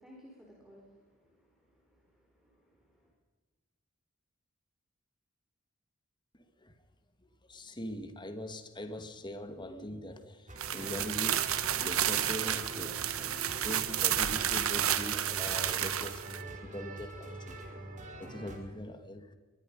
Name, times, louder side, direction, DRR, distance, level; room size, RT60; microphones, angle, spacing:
voice 1, 0.0-3.1, equal, ahead, -3 dB, 4.1 m, -58 dB
voice 2, 6.3-6.7 7.4-19.4, left 1 dB, 20° left, 8 dB, 1.9 m, -42 dB
sound 1, 10.5-18.6, right 1 dB, 35° right, 4.2 m, -45 dB
sound 2, 10.6-16.4, right 10 dB, 80° right, 1.4 m, -31 dB
23.0 x 21.5 x 5.4 m, 1.4 s
head